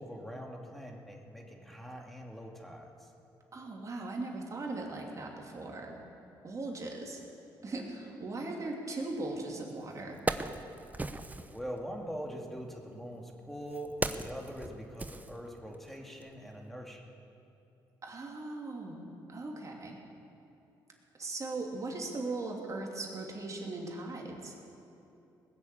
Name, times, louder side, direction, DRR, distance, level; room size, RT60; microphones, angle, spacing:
voice 1, 0.0-2.9 11.5-17.0, equal, ahead, 0 dB, 2.4 m, -43 dB
voice 2, 3.5-6.0 6.4-7.2 7.6-10.2 18.0-20.0 21.2-24.5, right 2 dB, 40° right, 0 dB, 2.9 m, -39 dB
Wood, 9.4-9.5 9.9-11.6 12.6-15.9 16.2-16.4, right 2 dB, 20° right, 0.8 m, -37 dB
20.0 x 7.1 x 8.6 m, 2.8 s
cardioid pair, 75°, 8 cm